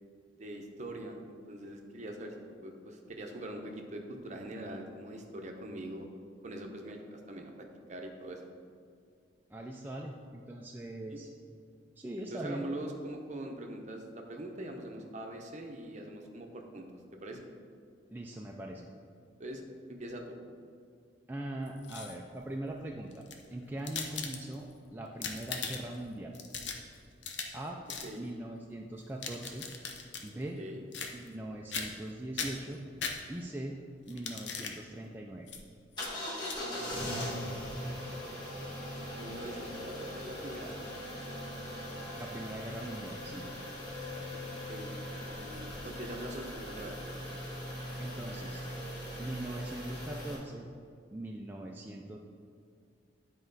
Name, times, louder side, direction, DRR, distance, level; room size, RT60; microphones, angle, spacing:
voice 1, 0.4-2.4 2.6-6.1 6.4-7.5 7.9-8.4 11.1-11.2 12.3-16.8 17.2-17.5 19.4-19.6 19.9-20.4 28.0-28.2 30.5-30.8 36.6-37.5 39.2-40.7 44.7-47.3, right 1 dB, 40° right, 2 dB, 0.8 m, -43 dB
voice 2, 9.5-11.3 12.0-12.7 18.1-18.9 21.3-23.2 23.5-26.3 27.5-27.8 28.2-29.7 30.2-30.6 31.1-32.8 33.3-33.8 34.1-35.5 42.2-43.5 48.0-48.6 49.2-50.7 51.1-52.2, right 1 dB, 10° right, -1 dB, 0.4 m, -41 dB
sound 1, 21.7-22.4 23.1-24.7 25.1-26.0 26.3-27.6 27.9-28.1 29.0-30.3 30.9-31.4 31.7-32.1 32.4-33.6 34.1-34.8 35.5-35.6 36.0-36.1 36.4-36.6, left 5 dB, 70° left, 0.8 m, -39 dB
sound 2, 36.0-50.3, left 1 dB, 25° left, 1.7 m, -40 dB
10.0 x 4.5 x 4.0 m, 2.3 s
head